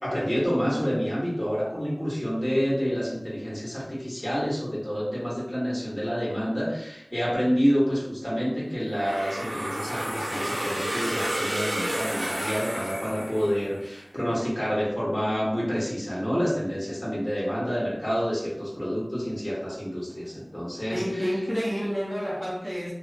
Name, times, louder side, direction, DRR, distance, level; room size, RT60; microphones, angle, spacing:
voice 1, 0.0-21.4, equal, 25° left, -7 dB, 1.4 m, -28 dB
sound 1, 8.9-13.8, equal, 70° right, 0.8 m, -31 dB
voice 2, 20.9-22.9, equal, 5° right, -7 dB, 0.9 m, -29 dB
2.9 x 2.0 x 2.5 m, 0.80 s
wide cardioid pair, 40°, 0 cm